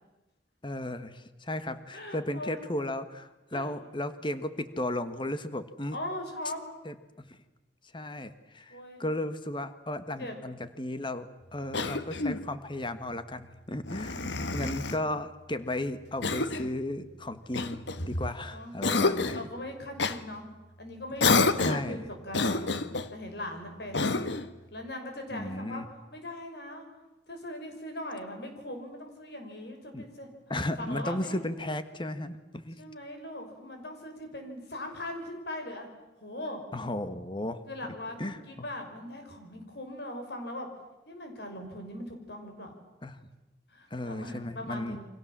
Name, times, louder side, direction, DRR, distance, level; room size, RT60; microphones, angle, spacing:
voice 1, 0.6-6.0 6.8-6.9 7.3-7.4 7.9-19.5 21.6-22.1 23.9-24.3 25.3-25.8 29.9-30.0 30.5-32.8 36.7-37.6 38.2-38.4 43.0-43.2 43.9-45.0, left 1 dB, 30° left, 11 dB, 1.5 m, -35 dB
voice 2, 1.9-2.6 3.5-3.7 5.9-6.6 8.7-9.0 10.2-10.4 14.1-15.0 18.5-20.5 20.8-22.7 23.1-24.2 24.7-25.8 26.1-26.9 27.3-30.3 30.8-31.4 32.8-35.9 36.2-36.6 37.7-40.7 41.1-42.8 43.7-45.1, left 1 dB, 65° left, 4 dB, 6.0 m, -40 dB
Cough, 11.7-12.5 13.8-15.0 16.2-16.7 17.5-18.4 18.8-19.5 20.0-20.2 21.2-21.9 22.3-23.1 23.9-24.5, left 3 dB, 85° left, 1.3 m, -28 dB
29.0 x 25.0 x 7.5 m, 1.0 s
head